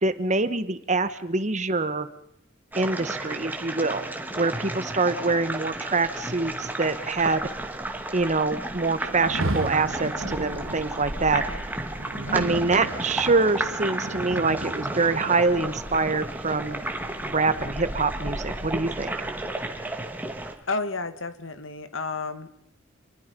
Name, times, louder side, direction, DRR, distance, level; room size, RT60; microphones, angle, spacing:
voice 1, 0.0-2.1 2.8-4.0 4.4-7.5 8.1-11.4 12.3-16.8 17.2-19.3, right 3 dB, 35° right, 12 dB, 1.4 m, -25 dB
sound 1, 2.7-20.5, right 1 dB, 10° right, 2.4 m, -33 dB
Rain, 9.1-18.2, right 2 dB, 80° right, 1.5 m, -36 dB
voice 2, 20.7-22.5, left 3 dB, 70° left, 11 dB, 1.9 m, -31 dB
28.5 x 21.0 x 5.4 m, 0.76 s
head